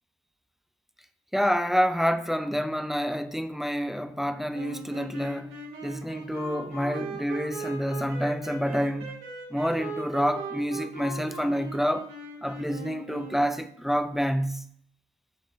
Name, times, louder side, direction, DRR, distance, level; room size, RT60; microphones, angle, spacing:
voice 1, 1.3-5.6 5.8-9.2 9.5-12.1 12.4-14.7, equal, ahead, 0.4 m, -28 dB
sound 1, 4.5-13.7, right 3 dB, 90° right, 1.9 m, -39 dB
7.5 x 3.6 x 4.0 m
cardioid pair, 90°, 20 cm